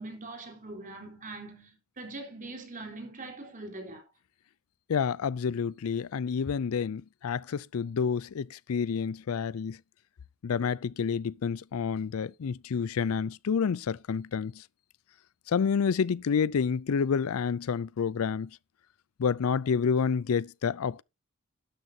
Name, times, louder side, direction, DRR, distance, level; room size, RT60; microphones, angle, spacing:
voice 1, 0.0-4.1, right 2 dB, 40° right, 4.0 m, -42 dB
voice 2, 4.9-9.8 10.4-14.5 15.5-18.5 19.2-21.0, left 6 dB, 75° left, 0.4 m, -29 dB
12.0 x 11.0 x 2.8 m
head